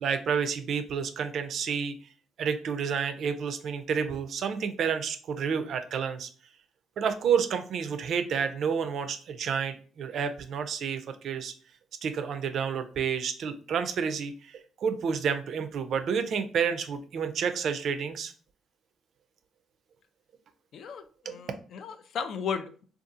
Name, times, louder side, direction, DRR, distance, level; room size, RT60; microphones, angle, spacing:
voice 1, 0.0-1.9 2.4-6.3 7.0-11.5 12.0-18.3 21.3-21.4, right 6 dB, 60° right, 9 dB, 0.3 m, -30 dB
voice 2, 20.7-22.8, left 6 dB, 65° left, 9 dB, 0.3 m, -35 dB
2.6 x 2.3 x 2.5 m, 0.41 s
hypercardioid pair, 50°, 0 cm